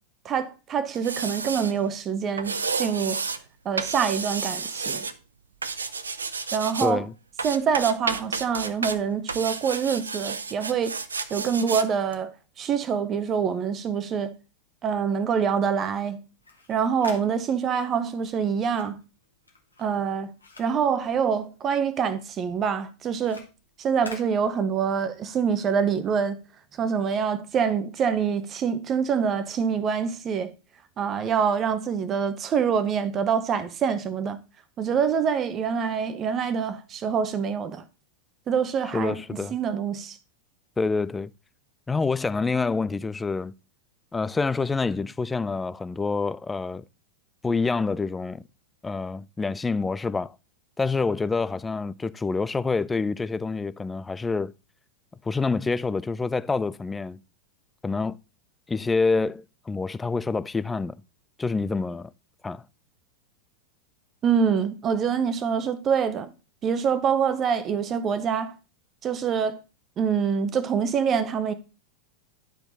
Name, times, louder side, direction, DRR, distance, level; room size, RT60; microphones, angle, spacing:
voice 1, 0.2-3.2 3.6-5.0 6.5-7.1 7.4-11.0 11.3-14.3 14.8-16.2 16.7-19.0 19.8-20.3 20.6-23.4 23.8-26.4 26.8-30.5 31.0-34.4 34.8-37.8 38.5-40.2 64.2-66.3 66.6-68.6 69.0-69.6 70.0-71.5, right 7 dB, 30° right, 0.9 m, -25 dB
sound 1, 0.9-1.7 2.4-3.4 3.8-5.1 5.6-6.9 7.4-9.0 9.3-11.9 12.1-12.2, right 4 dB, 75° right, 0.5 m, -31 dB
voice 2, 6.8-7.1 38.9-39.6 40.8-41.3 41.9-43.5 44.1-46.8 47.4-48.4 48.8-50.3 50.8-54.5 55.2-57.2 57.8-58.2 58.7-61.0 61.4-62.1 62.4-62.6, left 4 dB, 10° left, 0.3 m, -27 dB
sound 2, 16.3-21.8 22.1-25.1, left 3 dB, 80° left, 1.9 m, -49 dB
11.5 x 4.6 x 4.0 m
figure-of-eight pair, 90°, 0 cm